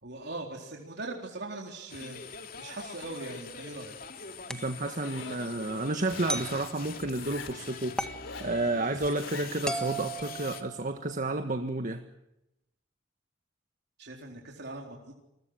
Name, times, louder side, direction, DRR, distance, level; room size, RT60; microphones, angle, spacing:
voice 1, 0.0-2.2 2.6-4.0 14.0-15.1, right 2 dB, 60° right, 0 dB, 4.0 m, -40 dB
sound 1, 1.9-10.6, left 5 dB, 50° left, 2.9 m, -44 dB
sound 2, 4.5-4.8 6.3-6.6 8.0-8.3 9.7-11.1, right 2 dB, 5° left, 1.7 m, -35 dB
voice 2, 4.5-8.0 8.4-12.0, right 2 dB, 45° right, 6 dB, 1.6 m, -31 dB
Zipper (clothing), 4.9-5.4 6.0-6.5 7.1-7.6 8.1-8.6 9.1-9.5, left 4 dB, 80° left, 4.8 m, -44 dB
29.0 x 22.5 x 6.4 m, 0.86 s
head